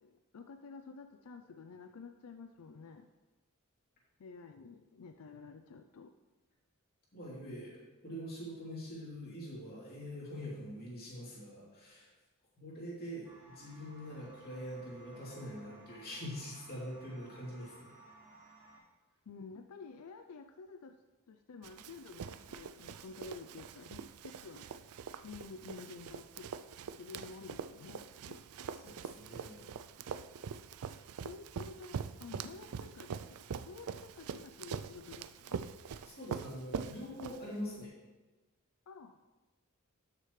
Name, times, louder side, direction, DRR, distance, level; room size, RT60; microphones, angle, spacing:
voice 1, 0.0-3.1 4.2-6.1 19.3-21.0 21.3-24.9 25.2-26.5 26.9-28.4 31.2-33.2 33.5-35.6 38.9-39.2, left 4 dB, 90° left, 7 dB, 0.5 m, -51 dB
voice 2, 7.1-12.1 12.6-17.9 28.8-29.7 36.0-38.0, equal, 45° left, -6 dB, 3.1 m, -44 dB
sound 1, 13.2-18.8, right 2 dB, 15° right, 2.7 m, -58 dB
Run, 21.6-37.8, right 6 dB, 85° right, 0.4 m, -44 dB
12.5 x 6.8 x 3.2 m, 1.2 s
head